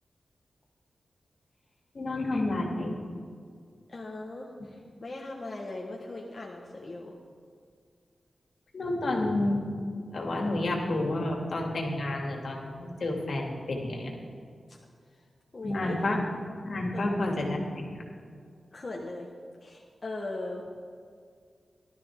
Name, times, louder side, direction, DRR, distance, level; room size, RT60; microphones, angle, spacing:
voice 1, 1.9-2.9 8.7-9.6 10.1-14.1 15.6-16.2 16.7-17.9, left 2 dB, 65° left, 0 dB, 2.5 m, -30 dB
voice 2, 3.9-7.1 15.5-16.1 16.9-17.1 18.7-19.3 19.6-20.6, left 2 dB, 40° left, -2 dB, 1.3 m, -39 dB
18.0 x 12.5 x 3.7 m, 2.2 s
wide cardioid pair, 90°, 0 cm